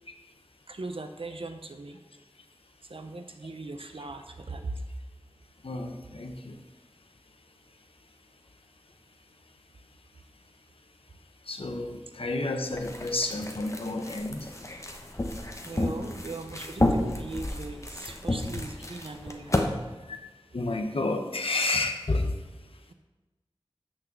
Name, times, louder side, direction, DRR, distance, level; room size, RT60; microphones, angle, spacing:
voice 1, 0.7-2.0 2.9-4.8 15.6-19.8, right 2 dB, 75° right, 7 dB, 0.7 m, -39 dB
voice 2, 5.6-6.6 11.5-14.5 20.1-20.2 20.5-22.3, left 2 dB, 80° left, 5 dB, 0.9 m, -30 dB
sound 1, 12.7-19.7, left 1 dB, 30° left, 1.0 m, -31 dB
6.6 x 6.0 x 7.3 m, 1.2 s
wide cardioid pair, 45°, 9 cm